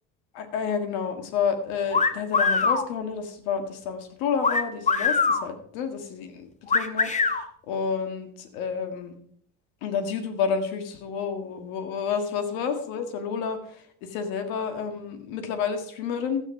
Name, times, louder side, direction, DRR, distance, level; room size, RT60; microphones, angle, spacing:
voice 1, 0.3-9.1 9.8-16.4, left 6 dB, 90° left, 8 dB, 1.9 m, -30 dB
sound 1, 1.9-2.8 4.4-5.4 6.7-7.4, left 4 dB, 25° left, 1.1 m, -22 dB
12.5 x 8.9 x 4.7 m, 0.64 s
supercardioid pair, 100°, 31 cm